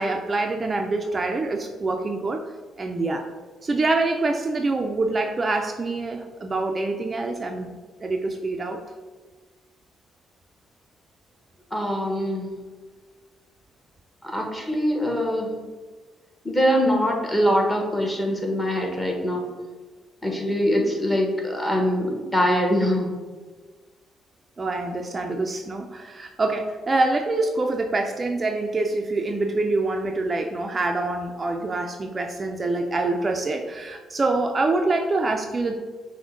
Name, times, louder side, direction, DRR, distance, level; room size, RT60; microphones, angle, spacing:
voice 1, 0.0-2.4 2.8-3.2 3.6-7.7 8.0-8.8 24.6-35.8, right 2 dB, 30° right, 3 dB, 0.4 m, -25 dB
voice 2, 11.7-12.6 14.2-15.6 16.4-19.4 20.2-23.1, equal, 15° left, 0 dB, 1.1 m, -23 dB
6.1 x 2.1 x 3.7 m, 1.4 s
cardioid pair, 90°, 0 cm